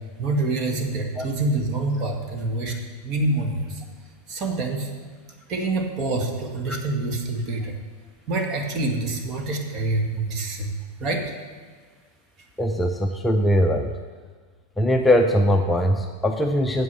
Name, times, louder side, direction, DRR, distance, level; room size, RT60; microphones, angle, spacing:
voice 1, 0.2-2.8 3.0-3.8 4.3-4.9 5.5-7.7 8.3-10.7 11.0-11.2, right 2 dB, 35° right, 3 dB, 1.9 m, -26 dB
voice 2, 12.6-13.9 14.8-16.8, equal, 5° left, 3 dB, 0.7 m, -21 dB
9.6 x 7.7 x 7.0 m, 1.5 s
figure-of-eight pair, 90°, 0 cm